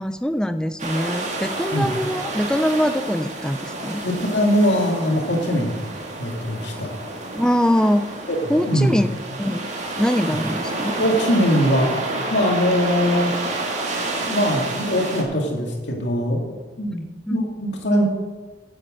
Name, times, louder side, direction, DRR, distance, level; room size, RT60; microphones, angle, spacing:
voice 1, 0.0-4.0 7.3-8.1 8.5-9.1 9.4-9.7 10.0-10.9 17.3-17.4, equal, 5° left, 10 dB, 0.5 m, -22 dB
sound 1, 0.8-15.2, right 2 dB, 40° right, 1.9 m, -29 dB
voice 2, 4.0-5.9 6.2-6.9 8.3-9.0 11.0-12.0 12.3-13.3 14.2-17.0 17.3-18.0, equal, 70° left, 0 dB, 2.4 m, -21 dB
9.3 x 7.8 x 7.7 m, 1.3 s
head